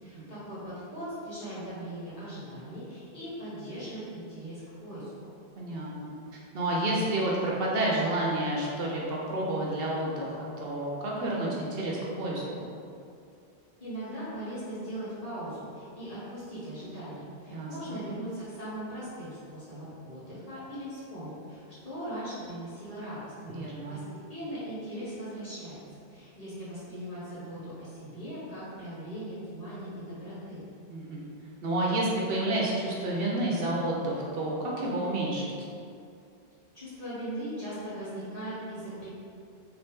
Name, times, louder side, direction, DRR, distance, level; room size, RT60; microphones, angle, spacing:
voice 1, 0.0-5.1 13.8-23.3 23.6-24.0 24.3-25.8 26.1-30.6 36.7-39.1, right 1 dB, 40° left, -12 dB, 1.5 m, -39 dB
voice 2, 5.6-6.1 6.5-12.7 17.5-18.0 23.4-24.0 30.9-31.3 31.6-35.7, right 1 dB, 70° right, -4 dB, 0.8 m, -30 dB
3.2 x 2.9 x 3.4 m, 2.4 s
omnidirectional pair, 1.0 m